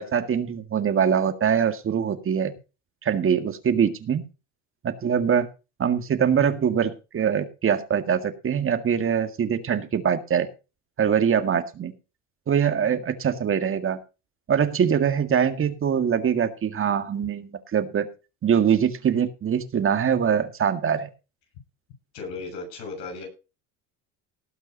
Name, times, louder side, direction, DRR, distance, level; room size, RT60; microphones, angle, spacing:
voice 1, 0.0-2.5 3.0-4.3 4.8-5.5 5.8-10.5 11.0-11.9 12.5-14.0 14.5-18.1 18.4-21.1, right 8 dB, 35° right, 9 dB, 1.8 m, -23 dB
voice 2, 22.1-23.3, left 3 dB, 85° left, 3 dB, 7.4 m, -35 dB
18.5 x 6.1 x 5.3 m, 0.32 s
supercardioid pair, 105°, 36 cm